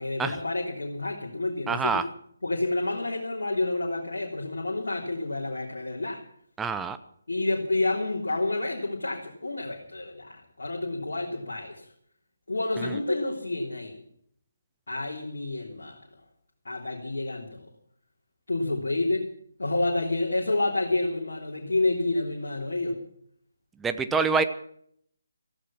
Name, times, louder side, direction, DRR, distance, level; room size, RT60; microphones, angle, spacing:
voice 1, 0.0-2.0 2.4-6.2 7.3-11.9 12.5-14.0 14.9-16.0 16.7-17.7 18.5-19.3 19.6-23.0 24.1-24.2, left 2 dB, 60° left, -2 dB, 3.5 m, -29 dB
voice 2, 1.7-2.0 6.6-7.0 12.8-13.0 23.8-24.4, right 5 dB, 5° right, 9 dB, 0.8 m, -26 dB
16.0 x 15.0 x 5.9 m, 0.65 s
figure-of-eight pair, 145°, 0 cm